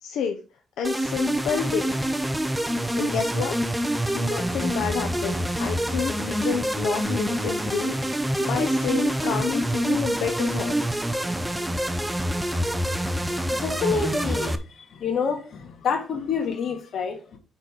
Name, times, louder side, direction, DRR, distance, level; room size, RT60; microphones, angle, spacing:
voice 1, 0.0-0.4 0.8-2.0 3.0-3.6 4.1-10.7, left 7 dB, 80° left, 0.9 m, -29 dB
sound 1, 0.8-14.6, right 1 dB, 5° right, 0.8 m, -26 dB
voice 2, 13.2-14.6 14.9-17.4, left 6 dB, 60° left, 2.0 m, -28 dB
8.6 x 4.2 x 4.6 m
cardioid pair, 90°, 0 cm